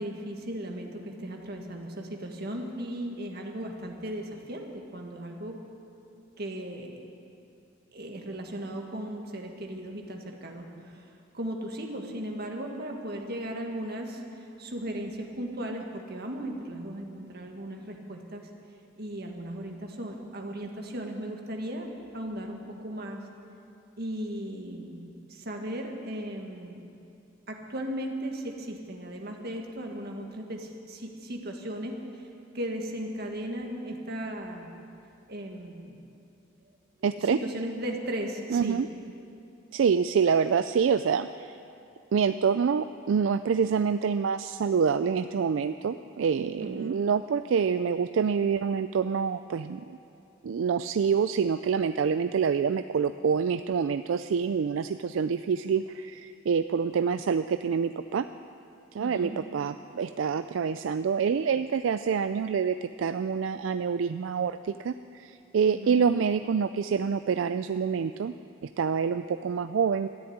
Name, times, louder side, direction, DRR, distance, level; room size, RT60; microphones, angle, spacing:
voice 1, 0.0-5.6 6.4-7.1 7.9-11.0 11.3-18.5 19.0-23.2 24.0-26.8 27.5-32.0 32.5-34.7 35.3-36.0 37.2-38.8 46.6-47.0 59.0-59.4 65.7-66.0, right 1 dB, 55° right, 2 dB, 1.8 m, -36 dB
voice 2, 37.0-37.4 38.5-38.9 39.7-41.5 42.1-49.8 50.4-58.3 58.9-68.3 68.8-70.1, right 6 dB, 80° right, 11 dB, 0.4 m, -26 dB
13.5 x 10.5 x 9.6 m, 2.6 s
head